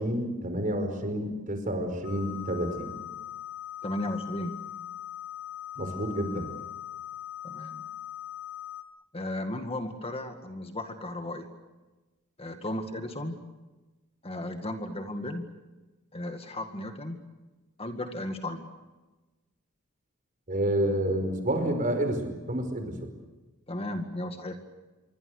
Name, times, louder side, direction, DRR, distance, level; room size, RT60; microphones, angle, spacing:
voice 1, 0.0-2.9 5.8-6.5 20.5-23.1, right 1 dB, 40° right, 7 dB, 5.1 m, -29 dB
sound 1, 2.0-8.8, left 11 dB, 65° left, 3.8 m, -41 dB
voice 2, 3.8-4.6 7.4-7.8 9.1-11.5 12.4-13.4 14.2-15.4 16.1-17.2 17.8-18.7 23.7-24.6, left 1 dB, 25° left, 6 dB, 2.0 m, -35 dB
27.0 x 24.0 x 6.6 m, 1.1 s
head